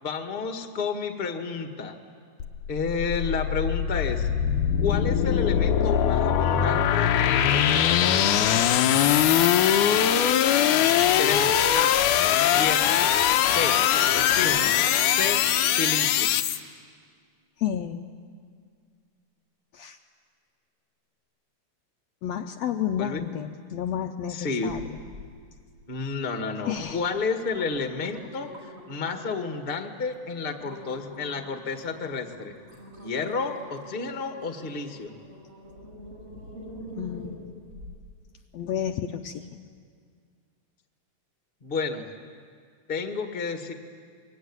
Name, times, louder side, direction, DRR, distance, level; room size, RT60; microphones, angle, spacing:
voice 1, 0.0-1.9 2.7-4.3 4.8-8.5 11.2-12.0 12.5-13.0 13.5-13.8 14.1-14.7 15.1-16.3 23.0-23.2 24.3-24.7 25.9-28.5 28.9-32.5 33.0-35.1 41.6-42.0 42.9-43.7, left 4 dB, 25° left, 5 dB, 1.4 m, -31 dB
sound 1, 2.4-16.6, left 10 dB, 85° left, 2.4 m, -22 dB
voice 2, 17.6-18.0 19.7-20.0 22.2-24.8 26.7-27.0 37.0-37.7 38.5-39.5, left 9 dB, 70° left, 5 dB, 1.8 m, -31 dB
sound 2, 24.7-25.3 25.7-26.2 26.8-26.9 27.3-29.5 30.0-30.2 30.6-38.1 38.6-38.7, equal, 45° right, 6.9 m, -45 dB
25.0 x 23.0 x 9.7 m, 2.1 s
omnidirectional pair, 3.5 m